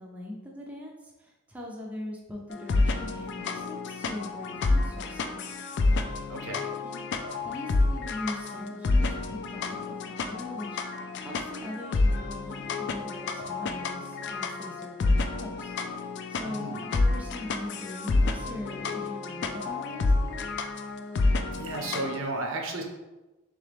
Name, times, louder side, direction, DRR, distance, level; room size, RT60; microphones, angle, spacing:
voice 1, 0.0-5.6 6.8-7.1 7.4-15.7 16.3-20.5, left 1 dB, 5° right, -2 dB, 0.5 m, -41 dB
sound 1, 2.5-22.2, left 3 dB, 55° left, 0.3 m, -29 dB
voice 2, 6.3-6.6 16.4-16.9 21.5-22.8, right 2 dB, 70° right, 2 dB, 0.8 m, -33 dB
3.9 x 3.3 x 3.4 m, 1.1 s
head